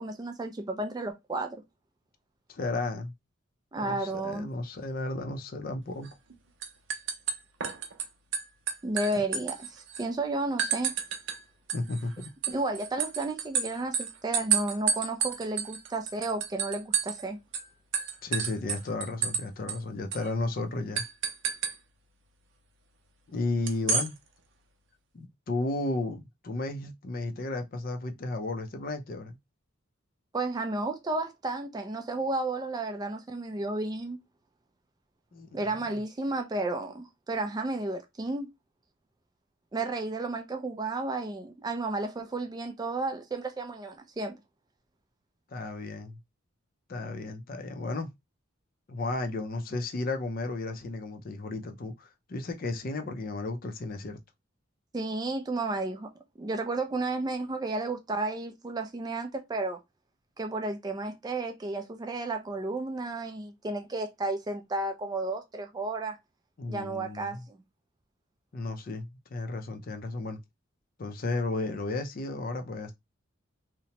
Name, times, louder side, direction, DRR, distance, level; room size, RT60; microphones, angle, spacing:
voice 1, 0.0-1.6 3.7-4.5 8.8-10.9 12.5-17.4 30.3-34.2 35.5-38.5 39.7-44.4 54.9-56.1 56.4-59.8 60.4-66.2 66.7-67.6, right 2 dB, 20° right, 0.3 m, -32 dB
voice 2, 2.5-3.1 3.8-6.1 11.7-12.3 18.2-21.0 23.3-24.2 25.1-29.4 35.3-35.5 35.9-36.0 45.5-46.2 46.9-48.1 48.9-54.2 66.6-67.4 68.5-70.4 71.0-72.9, left 2 dB, 45° left, 0.4 m, -33 dB
sound 1, 6.0-6.3 6.6-8.0 8.3-10.0 10.6-11.4 11.7-17.2 17.5-17.7 17.9-19.4 19.7-19.8 20.1-20.3 21.0-21.7 23.7-24.1, right 7 dB, 65° right, 0.6 m, -30 dB
2.8 x 2.1 x 2.8 m
head